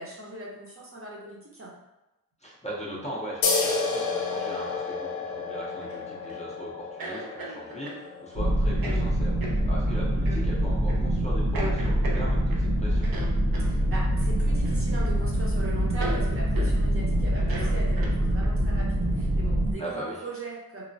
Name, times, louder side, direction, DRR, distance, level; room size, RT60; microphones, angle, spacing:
voice 1, 0.0-1.7 13.6-20.8, right 2 dB, 40° right, -4 dB, 0.7 m, -39 dB
voice 2, 2.4-9.4 9.6-13.1 19.8-20.2, equal, 20° left, -6 dB, 0.5 m, -39 dB
sound 1, 3.4-10.6, left 4 dB, 75° left, 0.5 m, -32 dB
sound 2, 5.8-6.4 7.0-8.1 8.8-9.0 9.4-9.6 10.2-10.4 10.9-11.1 11.5-12.7 13.0-13.7 14.6-15.2 15.4-15.5 16.0-16.2 16.6-16.7 17.4-18.5, right 2 dB, 75° right, 0.5 m, -37 dB
sound 3, 8.3-19.7, equal, 90° right, 0.9 m, -25 dB
3.1 x 2.0 x 2.5 m, 0.98 s
wide cardioid pair, 95°, 36 cm